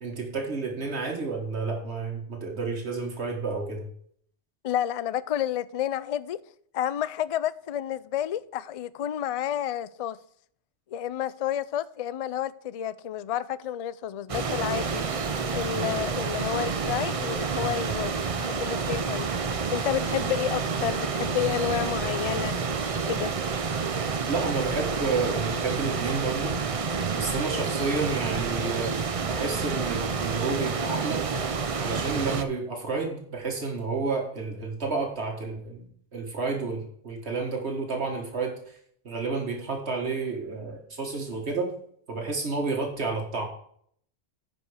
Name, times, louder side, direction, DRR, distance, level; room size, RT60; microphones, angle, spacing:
voice 1, 0.0-3.9 24.3-26.6 27.2-31.2 31.8-38.8 39.1-41.7 42.1-43.5, right 4 dB, 75° right, 1.8 m, -30 dB
voice 2, 4.6-6.4 6.7-10.2 10.9-15.0 15.5-19.3 19.7-22.5 23.0-23.3, left 10 dB, 55° left, 0.4 m, -30 dB
sound 1, 14.3-32.4, right 5 dB, 40° right, 0.6 m, -29 dB
10.0 x 5.3 x 4.9 m
omnidirectional pair, 1.1 m